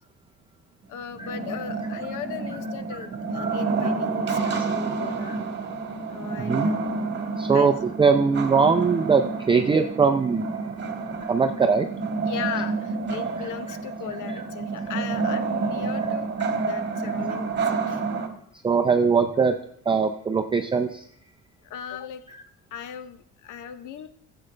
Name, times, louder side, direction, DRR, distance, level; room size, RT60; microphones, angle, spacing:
voice 1, 0.9-5.4 6.1-6.8 7.5-7.7 12.2-16.3 16.7-18.0 21.6-22.3 22.7-24.1, left 9 dB, 90° left, 11 dB, 0.8 m, -37 dB
sound 1, 1.1-18.3, right 4 dB, 35° right, 1.4 m, -29 dB
voice 2, 6.4-6.7 7.4-10.5 11.3-11.9 13.7-13.8 14.3-14.4 18.6-19.6 19.9-21.1 22.3-22.4, right 5 dB, 15° right, 4 dB, 0.4 m, -21 dB
15.0 x 7.8 x 3.3 m, 0.69 s
cardioid pair, 155°, 29 cm